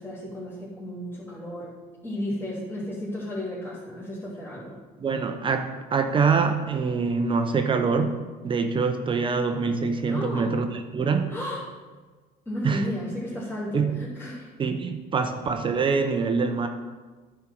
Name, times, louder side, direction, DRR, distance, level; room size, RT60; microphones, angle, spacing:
voice 1, 0.0-1.8 2.0-4.8 10.0-10.5 11.3-11.7 12.4-14.5, left 1 dB, 15° left, -10 dB, 3.0 m, -33 dB
voice 2, 5.0-8.2 8.4-10.7 10.9-11.3 12.6-12.9 13.7-14.0 14.6-16.7, right 5 dB, 30° right, 6 dB, 0.7 m, -24 dB
11.0 x 4.5 x 6.1 m, 1.3 s
cardioid pair, 120°, 16 cm